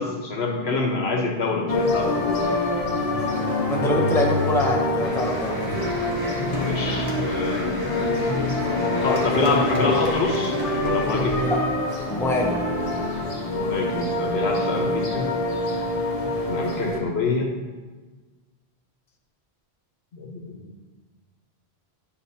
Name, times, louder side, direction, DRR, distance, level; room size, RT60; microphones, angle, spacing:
voice 1, 0.0-2.4 6.6-7.9 9.0-10.6 10.8-11.4 13.5-15.3 16.5-17.5 20.1-20.6, left 3 dB, 75° left, 1 dB, 1.3 m, -26 dB
sound 1, 1.7-17.0, left 2 dB, 35° left, 1.0 m, -25 dB
voice 2, 3.7-5.8 9.4-9.5 11.4-11.6 12.1-12.6, equal, 5° left, 0 dB, 0.6 m, -25 dB
sound 2, 5.0-11.7, left 1 dB, 20° right, 1.3 m, -33 dB
10.0 x 5.7 x 2.8 m, 1.3 s
omnidirectional pair, 1.1 m